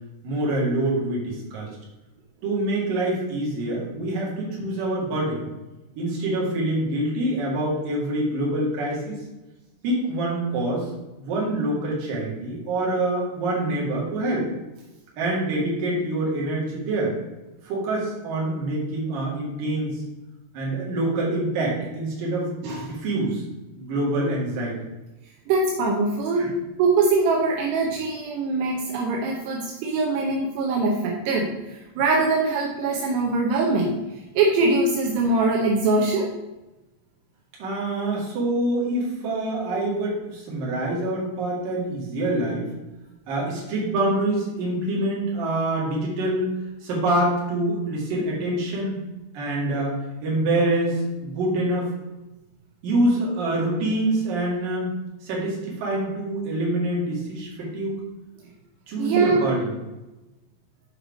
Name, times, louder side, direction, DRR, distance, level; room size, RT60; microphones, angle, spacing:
voice 1, 0.2-1.7 2.4-5.4 6.0-9.2 9.8-10.9 11.2-14.4 15.2-17.1 17.7-19.9 20.5-23.4 23.8-24.8 26.4-26.5 37.6-42.7 43.3-46.5 46.8-49.0 49.3-50.0 50.2-51.9 52.8-54.9 55.2-58.0 58.9-59.6, right 1 dB, 60° right, -4 dB, 3.5 m, -25 dB
voice 2, 25.5-26.5 26.8-33.9 34.4-36.3 59.0-59.5, right 3 dB, 80° right, -1 dB, 3.0 m, -22 dB
7.8 x 4.8 x 5.1 m, 1.0 s
omnidirectional pair, 4.8 m